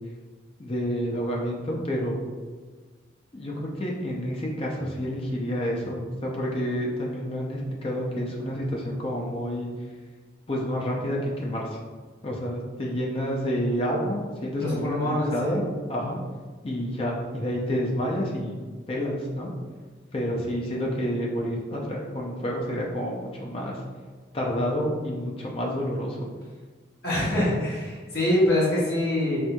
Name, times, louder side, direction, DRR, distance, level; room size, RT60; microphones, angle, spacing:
voice 1, 0.6-2.2 3.3-9.7 10.5-11.6 12.2-15.6 15.9-16.2 16.6-18.6 18.9-19.5 20.1-23.7 24.3-26.3, equal, 30° left, -2 dB, 0.4 m, -29 dB
voice 2, 14.6-15.6 27.0-29.4, left 1 dB, 55° left, -8 dB, 1.2 m, -24 dB
4.3 x 2.6 x 2.2 m, 1.4 s
head